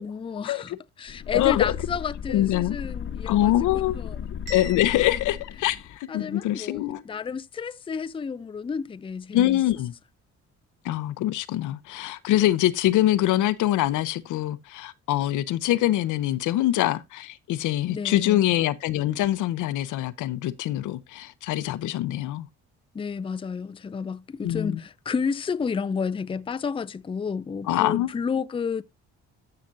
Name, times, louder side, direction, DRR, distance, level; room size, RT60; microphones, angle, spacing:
voice 1, 0.0-4.2 6.1-9.6 17.9-18.5 22.9-28.8, left 6 dB, 20° left, 0.4 m, -31 dB
sound 1, 1.1-6.0, left 8 dB, 40° left, 0.8 m, -35 dB
voice 2, 1.3-1.7 2.3-2.8 3.3-4.0 4.5-7.0 9.3-9.9 10.8-22.5 24.4-24.8 27.7-28.1, left 14 dB, 85° left, 0.7 m, -24 dB
Bell, 4.5-6.5, left 3 dB, 85° right, 3.7 m, -43 dB
14.0 x 5.9 x 2.6 m
cardioid pair, 90°, 30 cm